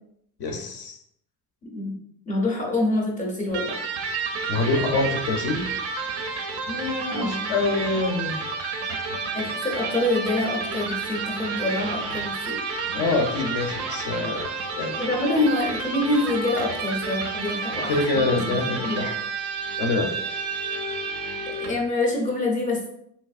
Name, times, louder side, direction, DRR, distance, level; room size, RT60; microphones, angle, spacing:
voice 1, 0.4-1.0 4.5-5.6 6.7-8.3 12.9-15.0 17.7-19.1 19.8-20.2, left 3 dB, 65° left, 4 dB, 0.6 m, -26 dB
voice 2, 2.3-3.8 7.1-7.5 9.3-12.6 15.0-19.1 21.5-22.9, left 2 dB, 20° left, -1 dB, 0.5 m, -26 dB
Electric guitar, 3.5-21.9, right 4 dB, 40° right, 0.4 m, -30 dB
3.3 x 2.9 x 2.4 m, 0.73 s
cardioid pair, 160°, 40 cm